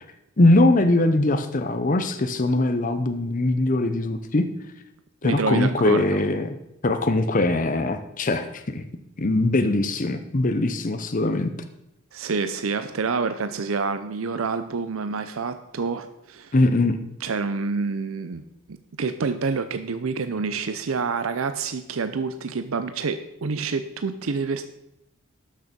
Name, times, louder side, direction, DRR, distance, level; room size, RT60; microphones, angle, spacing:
voice 1, 0.4-4.4 5.2-6.5 6.8-8.8 9.2-11.5 16.5-17.0, left 2 dB, 40° left, 8 dB, 0.7 m, -21 dB
voice 2, 5.2-6.2 12.1-16.5 17.2-18.4 18.7-24.6, right 4 dB, 75° right, 10 dB, 0.6 m, -27 dB
12.0 x 6.6 x 5.2 m, 0.84 s
head